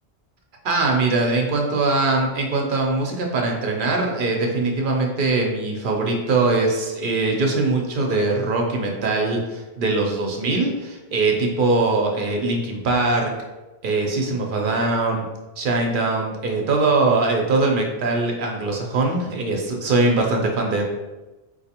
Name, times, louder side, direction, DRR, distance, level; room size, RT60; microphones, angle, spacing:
voice 1, 0.6-13.3 13.8-15.2 15.6-20.8, right 3 dB, 60° right, 1 dB, 0.7 m, -22 dB
4.0 x 2.6 x 2.8 m, 1.1 s
omnidirectional pair, 1.1 m